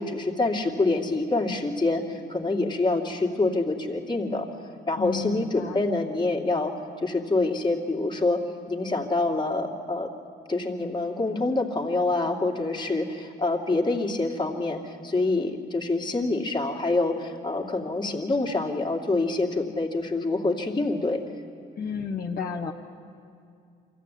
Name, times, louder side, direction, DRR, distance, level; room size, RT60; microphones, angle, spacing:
voice 1, 0.0-4.5 4.9-8.4 8.7-10.1 10.5-21.2, left 2 dB, 25° left, 1 dB, 2.4 m, -26 dB
voice 2, 5.0-5.8 21.8-22.7, left 6 dB, 45° left, -1 dB, 1.2 m, -32 dB
24.0 x 15.0 x 9.3 m, 2.4 s
cardioid pair, 90°, 20 cm